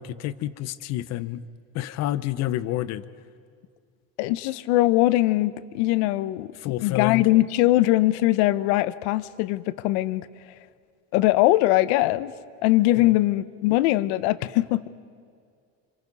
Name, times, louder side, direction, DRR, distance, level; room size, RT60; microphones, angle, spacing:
voice 1, 0.0-1.4 1.7-3.0 6.6-7.3 13.0-13.2, left 14 dB, 55° left, 14 dB, 0.9 m, -29 dB
voice 2, 4.2-6.5 6.8-10.3 11.1-12.3 12.6-14.9, left 17 dB, 80° left, 14 dB, 0.9 m, -21 dB
27.5 x 26.5 x 5.5 m, 2.3 s
cardioid pair, 140°, 32 cm